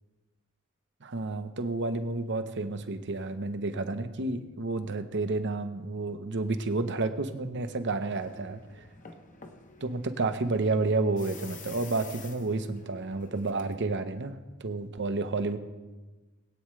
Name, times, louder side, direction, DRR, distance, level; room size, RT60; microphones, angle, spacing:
voice 1, 1.0-8.8 9.8-15.6, right 3 dB, 55° right, 9 dB, 0.9 m, -30 dB
sound 1, 8.1-13.8, left 4 dB, 35° left, 1.0 m, -50 dB
21.0 x 8.7 x 3.2 m, 1.2 s
head